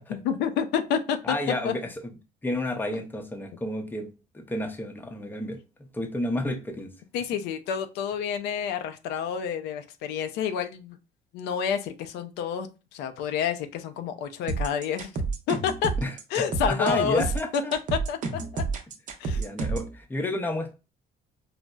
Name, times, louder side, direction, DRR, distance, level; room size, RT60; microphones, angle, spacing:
voice 1, 0.1-1.4 1.6-1.7 7.1-11.0 11.3-15.1 15.5-15.9 16.3-17.2 17.5-17.6 17.9-18.2 18.5-18.6 19.2-19.4, left 7 dB, 85° left, 0.4 m, -29 dB
voice 2, 1.2-1.9 2.4-4.1 4.3-5.6 5.9-6.9 16.0-17.7 19.4-20.7, left 1 dB, 10° left, 0.5 m, -31 dB
sound 1, 14.5-19.9, right 3 dB, 50° right, 0.6 m, -29 dB
3.9 x 2.0 x 2.2 m
cardioid pair, 110°, 17 cm